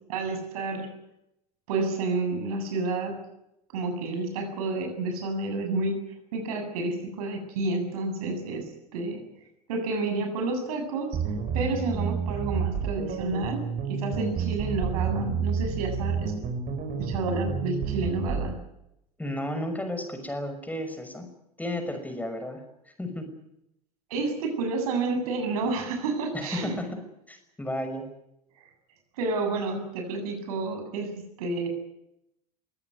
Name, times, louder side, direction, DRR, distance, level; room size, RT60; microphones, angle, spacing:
voice 1, 0.1-0.9 1.7-3.2 3.7-6.0 6.3-9.2 9.7-16.3 17.0-18.6 24.1-26.7 29.2-31.1 31.4-31.7, right 3 dB, 65° right, 5 dB, 7.6 m, -30 dB
sound 1, 11.1-18.5, right 6 dB, 40° right, 5.4 m, -30 dB
voice 2, 19.2-21.3 21.6-22.6 23.0-23.3 26.3-28.1, left 1 dB, 10° left, 6 dB, 5.9 m, -33 dB
23.5 x 17.5 x 9.7 m, 0.83 s
figure-of-eight pair, 75°, 21 cm